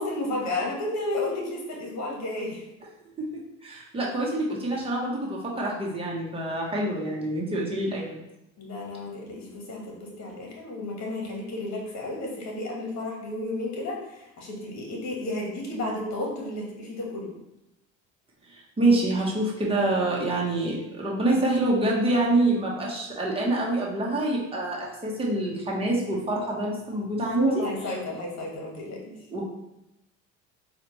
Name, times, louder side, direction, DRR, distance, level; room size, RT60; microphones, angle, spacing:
voice 1, 0.0-2.6 8.6-17.3 27.3-29.2, left 2 dB, 55° left, -1 dB, 1.4 m, -32 dB
voice 2, 3.6-8.2 18.5-27.6 29.3-29.4, right 2 dB, 15° right, -4 dB, 1.1 m, -26 dB
4.1 x 2.5 x 3.1 m, 0.89 s
supercardioid pair, 75°, 33 cm